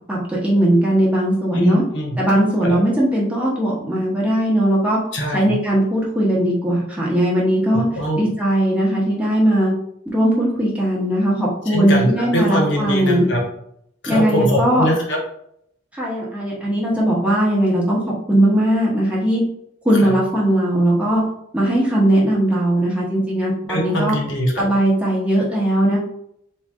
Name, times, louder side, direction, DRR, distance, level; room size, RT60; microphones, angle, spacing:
voice 1, 0.1-1.8 2.2-5.0 5.3-7.9 8.2-9.7 10.1-13.3 14.1-14.9 15.9-18.0 18.3-19.4 19.8-21.2 21.5-24.2 24.6-26.0, right 1 dB, 5° right, -5 dB, 1.0 m, -18 dB
voice 2, 1.5-2.2 2.6-2.8 5.1-5.5 7.7-8.2 11.7-13.4 14.0-15.2 20.0-20.1 23.7-24.5, equal, 65° left, -1 dB, 1.0 m, -21 dB
3.2 x 2.5 x 3.6 m, 0.73 s
head